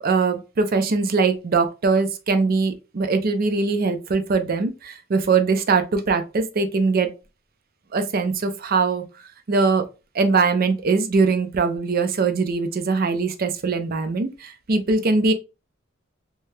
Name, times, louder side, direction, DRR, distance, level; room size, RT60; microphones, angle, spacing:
voice 1, 0.0-7.1 7.9-9.0 9.5-9.8 10.1-15.3, right 4 dB, 50° right, 0.5 m, -21 dB
3.2 x 2.3 x 2.6 m
head